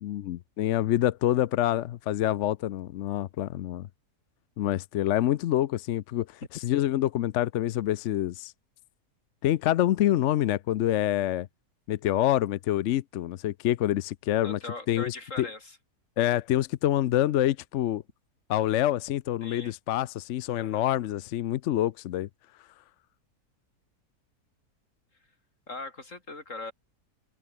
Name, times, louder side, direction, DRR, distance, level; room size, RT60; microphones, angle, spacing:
voice 1, 0.0-3.9 4.6-8.5 9.4-11.5 11.9-14.6 14.9-15.5 16.2-18.0 18.5-22.3, left 13 dB, 65° left, 0.7 m, -26 dB
voice 2, 14.4-15.8 19.4-19.7 20.6-20.8 25.7-26.7, left 3 dB, 50° left, 4.5 m, -40 dB
omnidirectional pair, 1.7 m